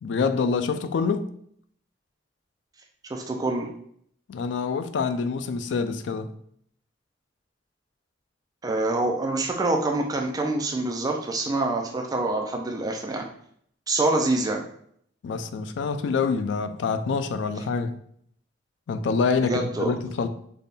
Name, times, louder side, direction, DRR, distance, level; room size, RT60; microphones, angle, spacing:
voice 1, 0.0-1.3 4.3-6.3 15.2-17.9 18.9-20.3, left 5 dB, 75° left, 0.3 m, -26 dB
voice 2, 3.1-3.7 8.6-13.3 13.9-14.6 19.4-19.9, right 2 dB, 20° right, 0.4 m, -26 dB
3.5 x 2.2 x 4.0 m
head